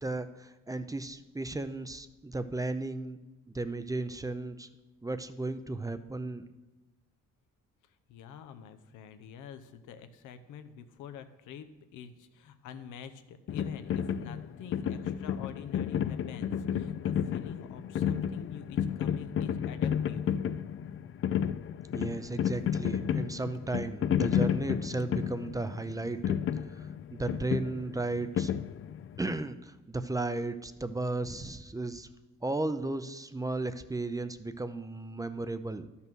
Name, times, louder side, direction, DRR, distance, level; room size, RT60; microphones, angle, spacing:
voice 1, 0.0-3.2 3.5-4.7 5.0-6.4 21.9-26.4 26.8-28.6 29.2-32.1 32.4-35.9, right 2 dB, 10° right, 11 dB, 0.5 m, -35 dB
voice 2, 8.1-20.3, left 8 dB, 90° left, 10 dB, 0.8 m, -47 dB
sound 1, 13.5-29.2, left 9 dB, 45° left, 0.4 m, -32 dB
12.0 x 5.6 x 6.2 m, 1.1 s
cardioid pair, 90°, 30 cm